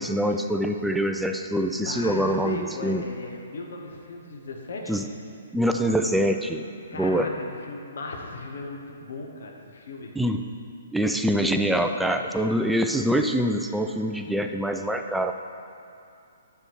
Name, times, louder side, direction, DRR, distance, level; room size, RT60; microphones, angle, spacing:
voice 1, 0.0-3.0 4.9-5.0 5.5-6.6 7.0-7.3 10.2-10.4 10.9-15.3, equal, ahead, 5 dB, 0.4 m, -24 dB
voice 2, 1.8-5.0 6.9-10.2, left 2 dB, 60° left, 1 dB, 1.2 m, -37 dB
9.4 x 7.0 x 4.7 m, 2.6 s
figure-of-eight pair, 120°, 0 cm